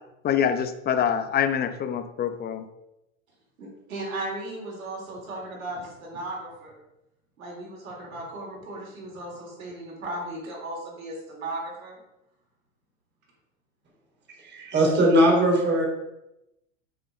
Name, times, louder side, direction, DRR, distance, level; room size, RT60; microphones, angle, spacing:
voice 1, 0.2-2.7, left 8 dB, 25° left, 10 dB, 0.8 m, -25 dB
voice 2, 3.6-6.7 7.4-12.0, right 2 dB, 85° right, -4 dB, 3.9 m, -36 dB
voice 3, 14.4-15.9, right 1 dB, 25° right, -1 dB, 3.2 m, -20 dB
7.2 x 7.1 x 5.3 m, 0.89 s
hypercardioid pair, 115°, 40 cm